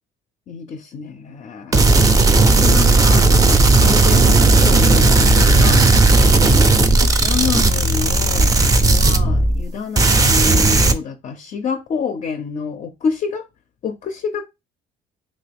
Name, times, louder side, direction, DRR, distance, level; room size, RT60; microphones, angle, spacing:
voice 1, 0.5-1.8 2.4-4.3 4.6-5.8 6.3-6.8 7.2-13.5 13.8-14.5, left 6 dB, 45° left, 0.4 m, -28 dB
sound 1, 1.7-9.7 10.0-10.9, right 2 dB, 20° right, 0.4 m, -14 dB
Thunder, 4.0-9.8, right 6 dB, 80° right, 0.6 m, -32 dB
3.0 x 2.6 x 3.3 m
cardioid pair, 110°, 17 cm